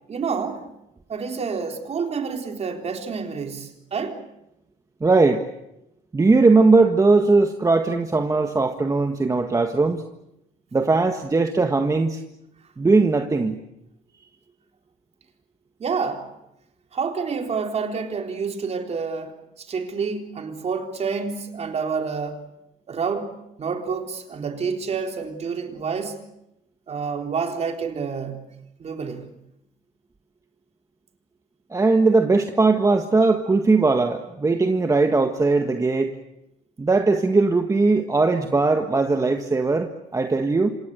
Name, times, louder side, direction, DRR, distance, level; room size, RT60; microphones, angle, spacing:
voice 1, 0.1-0.6 1.1-4.2 15.8-16.3 16.9-22.4 22.9-23.3 23.6-26.2 26.9-28.4 28.8-29.3, right 5 dB, 40° right, 3.8 m, -28 dB
voice 2, 5.0-5.4 6.1-10.0 10.7-12.2 12.8-13.6 31.7-36.1 36.8-40.7, right 3 dB, 20° right, 1.6 m, -19 dB
27.0 x 27.0 x 6.8 m
cardioid pair, 110°, 17 cm